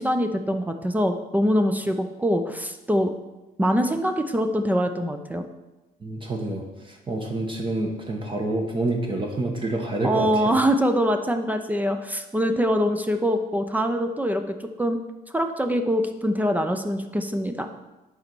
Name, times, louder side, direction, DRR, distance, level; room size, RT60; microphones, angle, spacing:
voice 1, 0.0-3.1 3.6-5.4 10.0-15.0 15.3-17.7, equal, 10° right, 7 dB, 0.5 m, -24 dB
voice 2, 6.0-10.5, right 2 dB, 30° right, 2 dB, 1.1 m, -28 dB
10.5 x 4.1 x 4.6 m, 1.1 s
cardioid pair, 110°, 17 cm